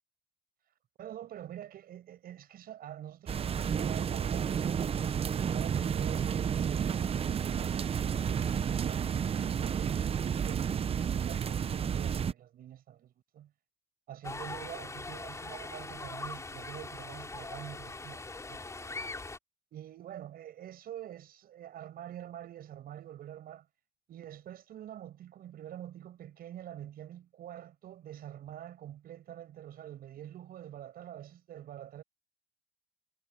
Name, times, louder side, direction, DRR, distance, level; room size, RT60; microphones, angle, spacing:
voice 1, 1.0-7.9 8.5-11.0 11.3-13.5 14.1-19.0 19.7-23.7 24.1-32.0, right 11 dB, 60° right, 7.1 m, -46 dB
sound 1, 3.3-12.3, right 8 dB, 35° right, 0.7 m, -31 dB
sound 2, 14.2-19.4, left 3 dB, 15° left, 4.2 m, -41 dB
cardioid pair, 110°, 17 cm